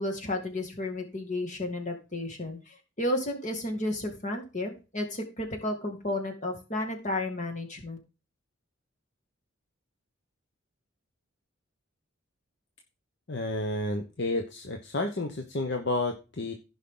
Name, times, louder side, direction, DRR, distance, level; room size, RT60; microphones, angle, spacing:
voice 1, 0.0-8.0, left 1 dB, 35° left, 3 dB, 2.2 m, -32 dB
voice 2, 13.3-16.5, left 2 dB, 55° left, 5 dB, 0.9 m, -31 dB
15.0 x 5.5 x 3.8 m, 0.31 s
head